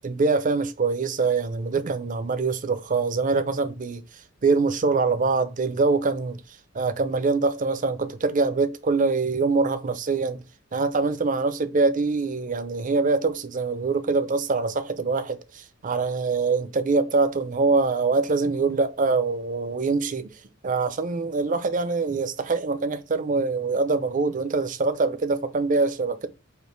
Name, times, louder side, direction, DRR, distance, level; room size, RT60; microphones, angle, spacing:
voice 1, 0.0-4.0 4.4-6.4 6.7-10.4 10.7-20.3 20.6-26.3, right 4 dB, 40° right, 0.5 m, -24 dB
5.0 x 2.5 x 3.2 m
head